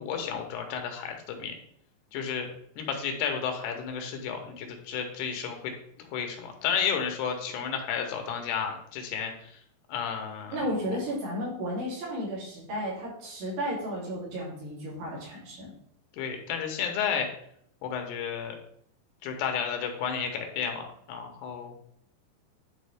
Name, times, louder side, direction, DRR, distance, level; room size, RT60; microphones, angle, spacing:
voice 1, 0.0-1.5 2.1-2.5 2.8-9.6 9.9-10.6 10.9-11.0 16.2-17.3 17.8-18.6 19.2-21.7, left 7 dB, 80° left, 4 dB, 3.1 m, -32 dB
voice 2, 10.5-15.7, equal, 80° right, -6 dB, 5.3 m, -33 dB
10.5 x 4.8 x 3.5 m, 0.68 s
omnidirectional pair, 4.8 m